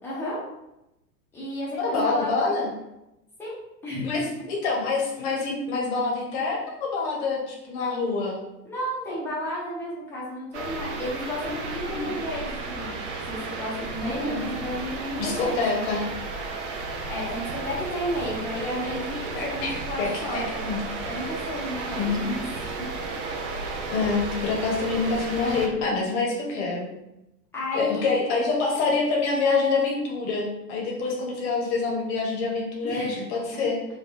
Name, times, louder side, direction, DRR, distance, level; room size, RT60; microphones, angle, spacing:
voice 1, 0.0-0.4 1.3-2.4 3.4-3.5 3.8-4.3 8.6-13.0 13.3-15.6 17.1-20.7 21.0-22.5 27.5-28.2 32.8-33.3, equal, 5° left, -7 dB, 0.4 m, -32 dB
voice 2, 1.8-2.7 4.0-8.4 11.9-12.1 14.0-14.5 15.2-16.0 19.3-19.7 20.0-20.8 22.0-22.3 23.9-26.9 27.7-33.8, left 4 dB, 40° left, -2 dB, 0.7 m, -26 dB
sound 1, 10.5-25.7, right 3 dB, 50° right, 0.5 m, -33 dB
2.6 x 2.3 x 2.5 m, 0.92 s
figure-of-eight pair, 90°, 49 cm